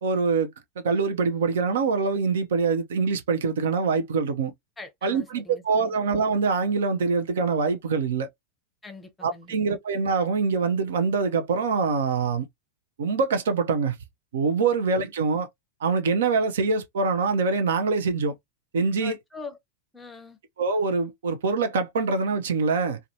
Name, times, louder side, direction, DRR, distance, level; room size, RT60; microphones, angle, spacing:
voice 1, 0.0-4.5 5.0-8.3 9.2-12.5 13.0-14.0 14.3-15.5 15.8-18.3 18.7-19.2 20.6-23.0, right 4 dB, 60° right, 0.4 m, -24 dB
voice 2, 4.8-5.9 8.8-9.6 19.0-19.6 19.9-20.4, left 4 dB, 10° left, 0.6 m, -42 dB
2.4 x 2.2 x 2.6 m
figure-of-eight pair, 90°, 0 cm